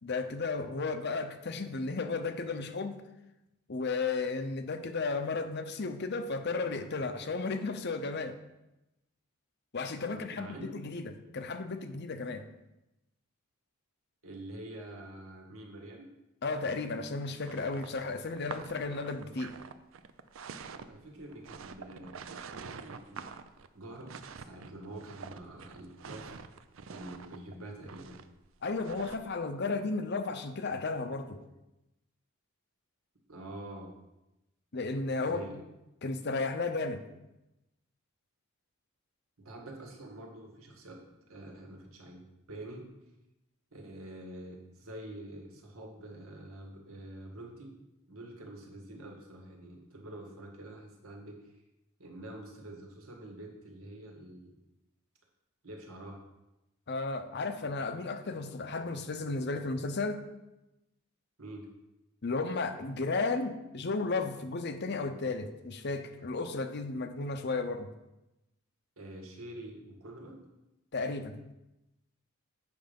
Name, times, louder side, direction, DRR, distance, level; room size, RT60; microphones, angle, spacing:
voice 1, 0.0-3.0 3.7-8.4 9.7-12.4 16.4-19.5 28.6-31.4 34.7-35.6 36.0-37.0 56.9-60.2 62.2-67.9 70.9-71.3, left 3 dB, 50° left, 8 dB, 0.7 m, -34 dB
voice 2, 10.1-10.7 14.2-16.1 20.7-23.2 23.7-26.3 26.9-28.2 33.3-33.9 35.2-35.6 39.4-41.0 41.3-42.2 42.5-42.9 43.7-47.7 48.1-51.5 52.0-54.6 55.6-56.2 61.4-61.7 69.0-70.4, right 1 dB, 80° right, 0 dB, 1.9 m, -46 dB
sound 1, 17.4-29.3, right 5 dB, 65° right, 0.5 m, -46 dB
7.9 x 5.9 x 5.3 m, 0.95 s
head